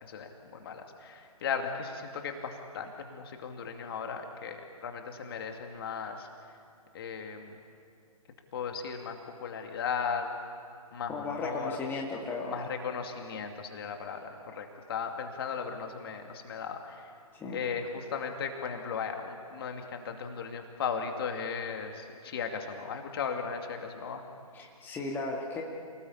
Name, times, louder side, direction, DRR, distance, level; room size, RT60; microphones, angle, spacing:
voice 1, 0.0-6.3 6.9-7.6 8.5-10.3 10.9-11.8 12.4-17.1 17.5-24.2, left 6 dB, 40° left, 4 dB, 2.5 m, -36 dB
voice 2, 11.1-12.7 17.3-17.6 24.5-25.6, left 3 dB, 10° left, -1 dB, 2.0 m, -35 dB
28.0 x 19.5 x 8.6 m, 2.4 s
figure-of-eight pair, 135°, 19 cm